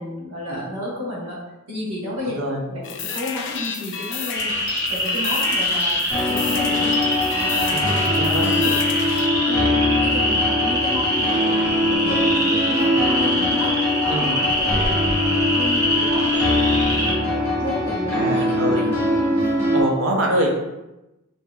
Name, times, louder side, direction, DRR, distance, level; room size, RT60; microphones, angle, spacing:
voice 1, 0.0-1.4 1.7-2.4 2.7-7.0 7.3-8.8 9.4-9.7 9.9-13.7 14.0-16.5 16.9-18.9 19.3-19.8, left 1 dB, 85° right, -6 dB, 1.2 m, -32 dB
voice 2, 2.3-2.6 7.7-8.5 14.1-14.3 18.1-18.9 19.7-20.5, right 1 dB, 60° right, 0 dB, 0.5 m, -24 dB
sound 1, 2.8-9.3, left 6 dB, 55° left, 0.3 m, -31 dB
sound 2, 4.3-17.1, left 1 dB, 15° right, 0.5 m, -24 dB
sound 3, 6.1-19.8, left 1 dB, 10° left, 0.8 m, -22 dB
2.8 x 2.7 x 2.3 m, 0.97 s
head